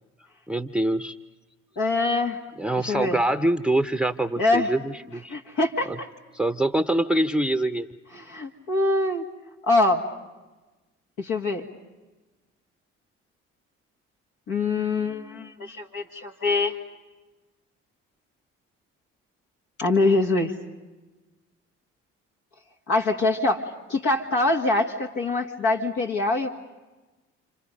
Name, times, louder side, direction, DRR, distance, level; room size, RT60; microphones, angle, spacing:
voice 1, 0.5-1.2 2.6-5.3 5.9-6.0 6.3-7.9, right 1 dB, 5° right, 8 dB, 0.7 m, -24 dB
voice 2, 1.8-2.4 2.9-3.2 4.4-4.7 5.3-6.1 8.1-9.3 9.6-10.0 11.2-11.7 14.5-16.7 19.8-20.5 22.9-23.6 23.9-26.5, left 2 dB, 75° left, 1 dB, 2.0 m, -24 dB
30.0 x 26.0 x 5.3 m, 1.1 s
supercardioid pair, 60°, 30 cm